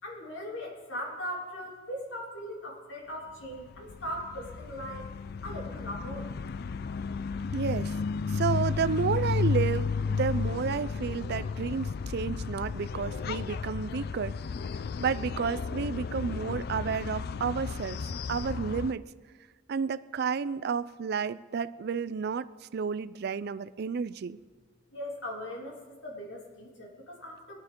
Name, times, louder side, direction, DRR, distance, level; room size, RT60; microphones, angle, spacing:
voice 1, 0.0-5.0 5.4-6.3 24.9-27.6, equal, 70° left, -1 dB, 2.8 m, -39 dB
sound 1, 3.4-18.9, left 5 dB, 55° left, 0.4 m, -33 dB
voice 2, 7.5-8.0 8.3-14.4 14.7-19.1 19.7-24.4, right 6 dB, 55° right, 14 dB, 0.4 m, -31 dB
21.5 x 9.6 x 3.7 m, 1.4 s
head